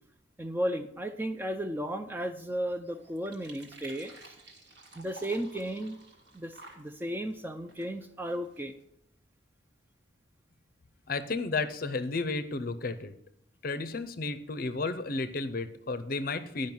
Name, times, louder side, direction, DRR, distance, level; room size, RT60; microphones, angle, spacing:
voice 1, 0.4-4.3 5.0-6.0 6.3-8.7, equal, 10° right, 7 dB, 0.3 m, -34 dB
sound 1, 1.7-8.8, right 2 dB, 60° right, 1.5 m, -54 dB
voice 2, 11.1-13.1 13.6-16.7, left 3 dB, 45° left, 11 dB, 0.6 m, -32 dB
10.5 x 5.2 x 5.4 m, 0.77 s
head